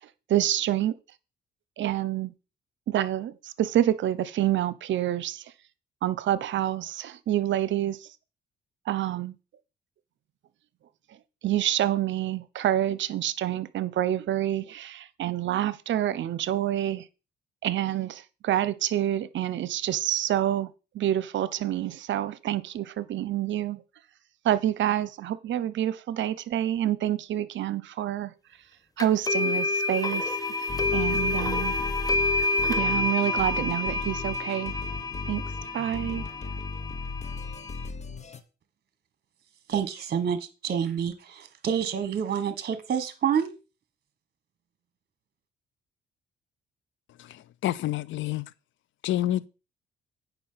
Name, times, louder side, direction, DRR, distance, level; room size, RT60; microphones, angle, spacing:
voice 1, 0.3-0.9 1.8-2.3 2.9-5.4 6.0-8.0 8.9-9.3 11.4-17.0 17.6-20.7 20.9-23.8 24.4-28.3 29.0-30.2 30.9-31.8 32.8-34.7 35.3-35.4 35.7-36.2, right 12 dB, 70° right, 0.8 m, -27 dB
sound 1, 29.0-37.9, left 3 dB, 20° left, 1.2 m, -28 dB
sound 2, 30.7-38.4, left 4 dB, 35° left, 1.3 m, -36 dB
voice 2, 39.7-43.5, right 8 dB, 55° right, 1.4 m, -28 dB
voice 3, 47.2-48.4 49.0-49.5, left 13 dB, 75° left, 0.6 m, -28 dB
9.1 x 5.7 x 5.7 m
cardioid pair, 90°, 20 cm